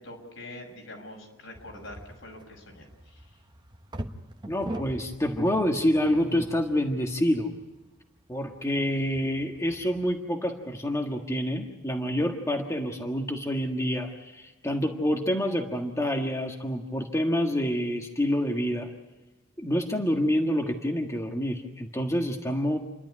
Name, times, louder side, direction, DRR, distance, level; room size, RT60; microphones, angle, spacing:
voice 1, 0.0-3.4, left 1 dB, 80° left, 1 dB, 6.4 m, -45 dB
sound 1, 1.5-10.2, right 1 dB, 25° right, 1.2 m, -43 dB
voice 2, 4.5-7.5 8.3-18.9 19.6-22.8, equal, 15° left, 2 dB, 1.6 m, -27 dB
29.0 x 12.0 x 9.7 m, 1.1 s
head